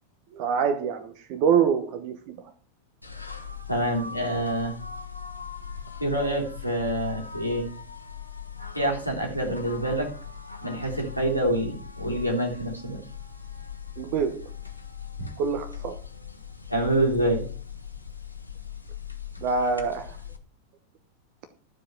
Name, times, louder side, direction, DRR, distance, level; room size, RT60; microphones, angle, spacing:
voice 1, 0.3-2.5 14.0-14.5 15.4-16.0 19.4-20.2, right 6 dB, 45° right, 1.0 m, -26 dB
sound 1, 3.0-20.4, left 7 dB, 85° left, 1.6 m, -40 dB
voice 2, 3.7-4.8 6.0-7.7 8.8-10.1 10.6-13.0 15.2-15.3 16.7-17.5, right 1 dB, 85° right, 3.4 m, -26 dB
12.5 x 4.9 x 7.9 m
figure-of-eight pair, 90°, 0 cm